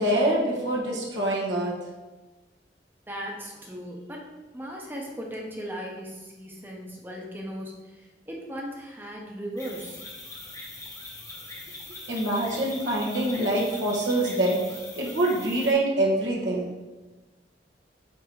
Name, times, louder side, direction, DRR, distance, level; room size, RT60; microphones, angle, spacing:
voice 1, 0.0-1.7 12.1-16.7, right 1 dB, 85° right, -4 dB, 1.4 m, -25 dB
voice 2, 3.1-10.0, equal, 10° right, -1 dB, 0.8 m, -37 dB
sound 1, 9.6-15.7, left 2 dB, 20° left, 0.9 m, -41 dB
8.2 x 2.9 x 4.7 m, 1.2 s
head